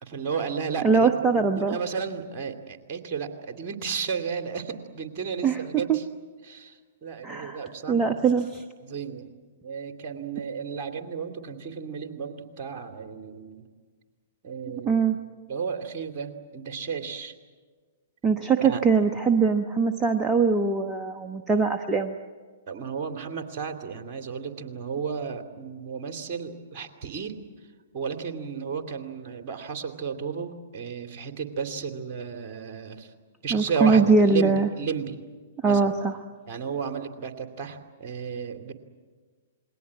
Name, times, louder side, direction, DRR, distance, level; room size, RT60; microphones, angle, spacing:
voice 1, 0.0-6.0 6.4-8.2 8.8-9.3 9.6-13.6 14.4-15.0 15.5-17.4 18.6-18.8 22.7-27.3 27.9-33.1 33.4-35.2 35.6-35.9 36.5-38.7, right 6 dB, 40° right, 6 dB, 2.7 m, -33 dB
voice 2, 0.8-1.8 5.4-5.6 5.9-6.0 7.2-8.6 14.8-15.2 18.2-22.2 33.5-34.7 35.6-36.1, right 4 dB, 15° right, 5 dB, 1.1 m, -22 dB
28.5 x 21.5 x 8.4 m, 1.5 s
figure-of-eight pair, 110°, 0 cm